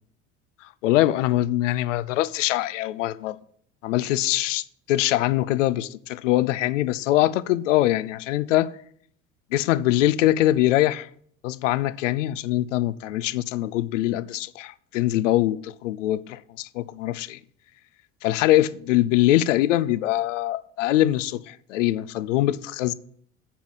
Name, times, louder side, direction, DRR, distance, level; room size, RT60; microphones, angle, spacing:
voice 1, 0.8-3.4 3.8-8.7 9.5-11.1 11.4-17.4 18.2-22.9, left 15 dB, 80° left, 0.5 m, -23 dB
7.1 x 5.7 x 7.4 m
hypercardioid pair, 65°, 37 cm